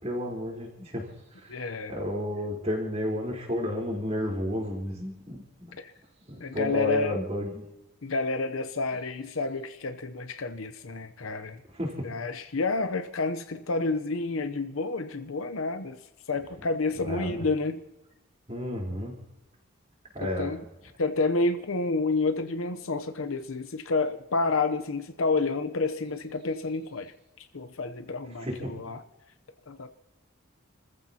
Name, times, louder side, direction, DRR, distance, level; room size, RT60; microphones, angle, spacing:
voice 1, 0.0-1.6 1.9-5.7 6.3-7.6 11.7-12.1 17.1-17.5 18.5-19.1 20.1-20.5 28.3-28.7, left 1 dB, 30° right, 4.1 m, -32 dB
voice 2, 1.5-1.9 5.8-5.9 6.4-7.2 8.0-11.6 12.0-16.0 16.3-17.8 20.2-20.6 21.0-27.1 27.5-29.0 29.7-29.9, left 3 dB, 80° left, 0.8 m, -29 dB
29.5 x 14.5 x 2.9 m
head